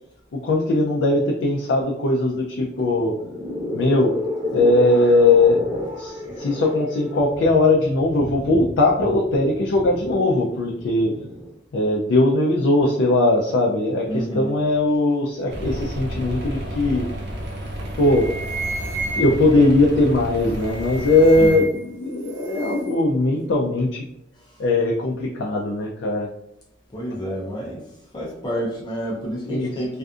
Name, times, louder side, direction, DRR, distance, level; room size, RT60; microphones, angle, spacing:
voice 1, 0.3-3.1 3.7-4.1 4.5-11.1 11.7-17.1 18.0-18.3 19.1-24.0 24.6-26.3 29.5-29.8, left 2 dB, 85° left, -1 dB, 0.4 m, -19 dB
sound 1, 2.7-11.5, left 1 dB, 20° right, 0.9 m, -32 dB
voice 2, 14.1-14.5 21.4-21.6 24.5-24.6 26.9-27.9 28.1-30.0, equal, 25° left, -3 dB, 0.6 m, -29 dB
sound 2, 15.5-21.5, equal, 60° right, 0.5 m, -31 dB
sound 3, 17.5-17.7 18.0-19.6 20.5-21.9 22.2-23.0, right 1 dB, 90° right, 0.8 m, -32 dB
2.5 x 2.4 x 2.3 m, 0.79 s
head